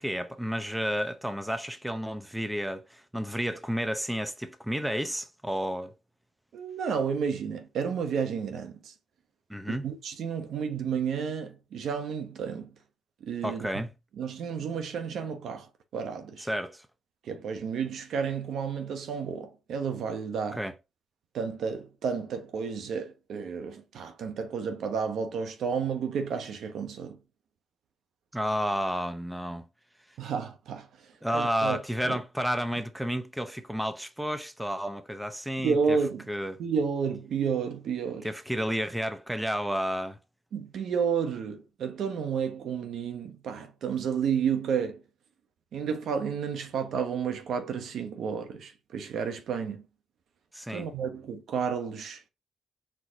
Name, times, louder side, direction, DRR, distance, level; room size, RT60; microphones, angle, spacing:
voice 1, 0.0-5.9 9.5-9.9 13.4-13.9 16.4-16.9 20.5-20.7 28.3-29.6 31.2-36.0 36.3-36.6 38.2-40.2 50.5-50.9, equal, 5° right, 0.7 m, -31 dB
voice 2, 6.5-8.9 9.7-12.7 13.2-13.9 14.2-15.7 15.9-16.5 17.2-20.6 21.3-27.2 30.2-30.9 31.3-31.8 32.1-32.2 35.6-36.3 36.6-38.3 40.5-45.0 45.7-49.8 50.7-52.2, right 6 dB, 75° right, 1.0 m, -31 dB
4.5 x 3.8 x 2.9 m
cardioid pair, 65°, 0 cm